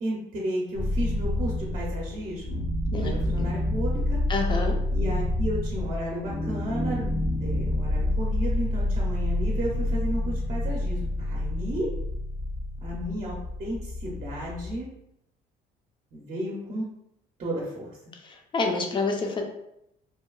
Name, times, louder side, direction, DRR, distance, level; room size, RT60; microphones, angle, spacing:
voice 1, 0.0-2.6 2.9-4.2 4.9-7.1 7.4-11.9 12.8-14.9 16.1-16.9 17.4-18.0, right 1 dB, 40° right, -3 dB, 0.7 m, -33 dB
sound 1, 0.7-14.8, left 1 dB, 85° left, 0.8 m, -28 dB
voice 2, 2.9-3.4 4.3-4.8 18.3-19.4, left 3 dB, 30° left, 2 dB, 0.5 m, -28 dB
2.8 x 2.2 x 2.3 m, 0.79 s
cardioid pair, 110°, 17 cm